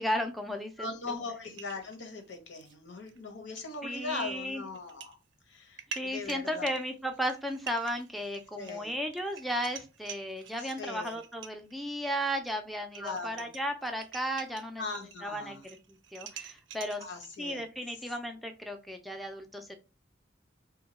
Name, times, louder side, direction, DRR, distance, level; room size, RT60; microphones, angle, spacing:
voice 1, 0.0-1.2 3.8-4.6 6.0-14.8 15.2-17.0 17.4-19.7, equal, ahead, 4 dB, 0.4 m, -35 dB
voice 2, 0.8-5.1 5.5-6.7 8.5-8.9 10.6-11.1 13.0-13.5 14.8-15.6 17.0-17.6, left 3 dB, 85° left, 4 dB, 0.9 m, -40 dB
sound 1, 1.5-2.7 3.1-3.2 3.6-3.7 4.7-5.1 5.5-11.7 12.5-12.6 12.8-15.2 15.5-17.4, right 8 dB, 80° right, 0.5 m, -47 dB
2.8 x 2.2 x 4.0 m, 0.30 s
head